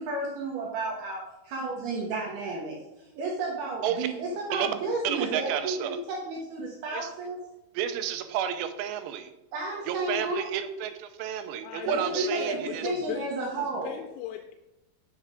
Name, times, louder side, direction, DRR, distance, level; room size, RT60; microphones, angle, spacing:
voice 1, 0.0-2.8 3.2-7.4 9.5-10.5 11.9-14.0, right 2 dB, 75° right, -2 dB, 2.5 m, -32 dB
voice 2, 5.0-6.0 6.9-7.1 7.7-9.3 9.9-12.9, right 9 dB, 90° right, 9 dB, 3.1 m, -31 dB
voice 3, 11.6-14.5, left 10 dB, 90° left, 6 dB, 3.1 m, -38 dB
7.9 x 6.4 x 3.7 m, 0.95 s
omnidirectional pair, 5.5 m